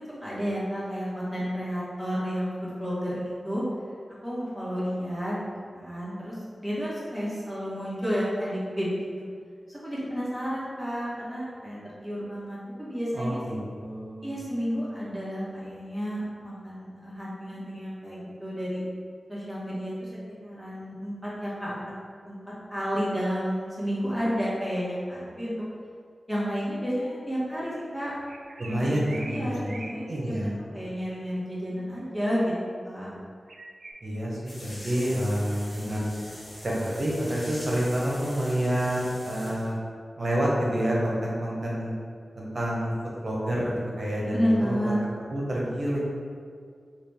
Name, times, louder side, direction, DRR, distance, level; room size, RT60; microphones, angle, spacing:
voice 1, 0.0-3.6 4.2-5.4 5.7-9.1 9.7-13.4 14.2-18.8 19.3-20.1 20.4-21.8 22.3-22.4 22.7-25.5 26.3-28.2 28.6-29.0 29.3-30.3 30.7-32.5 32.8-33.1 44.3-45.0, equal, ahead, -9 dB, 1.4 m, -31 dB
voice 2, 13.1-14.4 28.6-29.8 30.1-30.6 34.0-36.1 36.6-39.8 40.2-41.9 42.4-42.9 43.2-44.9 45.3-46.0, equal, 55° right, -5 dB, 0.9 m, -28 dB
sound 1, 28.3-30.0 30.2-30.5 31.0-31.1 33.5-33.9, right 3 dB, 80° right, 0.3 m, -43 dB
sound 2, 34.5-39.7, left 1 dB, 50° left, 1.1 m, -44 dB
3.9 x 2.4 x 3.4 m, 2.1 s
cardioid pair, 55°, 0 cm